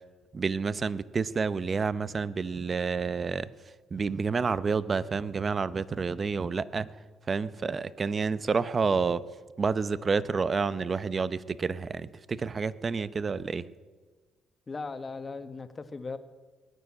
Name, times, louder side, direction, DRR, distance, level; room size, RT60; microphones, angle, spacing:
voice 1, 0.3-3.5 3.9-6.9 7.3-9.2 9.6-13.7, right 5 dB, 35° right, 17 dB, 0.7 m, -29 dB
voice 2, 14.7-16.2, left 4 dB, 30° left, 9 dB, 1.3 m, -38 dB
20.0 x 9.6 x 7.3 m, 1.4 s
cardioid pair, 85°, 0 cm